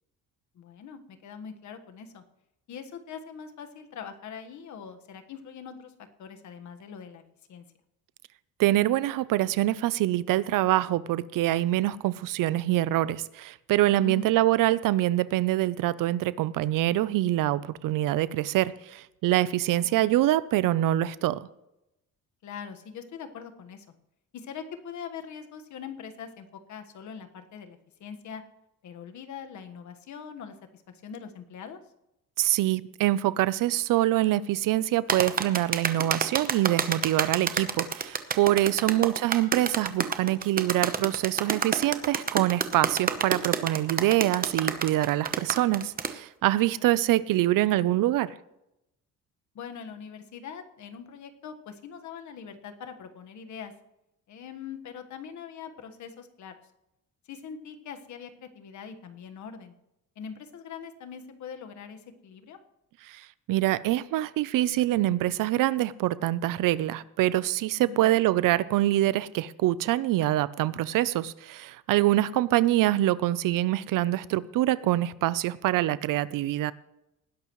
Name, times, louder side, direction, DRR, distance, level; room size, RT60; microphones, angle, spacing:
voice 1, 0.5-2.2 2.7-5.9 6.2-7.2 7.5-7.6 13.9-14.4 19.6-20.1 22.4-23.9 24.3-28.4 28.8-31.8 38.7-38.9 46.6-46.8 49.5-53.7 54.3-56.5 57.3-59.7 60.2-62.6 67.9-68.2 72.1-72.4, left 7 dB, 60° left, 1.5 m, -42 dB
voice 2, 8.6-21.5 32.4-48.3 63.1-63.2 63.5-76.7, right 15 dB, 75° right, 0.6 m, -25 dB
sound 1, 35.1-46.1, right 6 dB, 25° right, 0.9 m, -28 dB
19.0 x 11.0 x 3.1 m
cardioid pair, 130°, 33 cm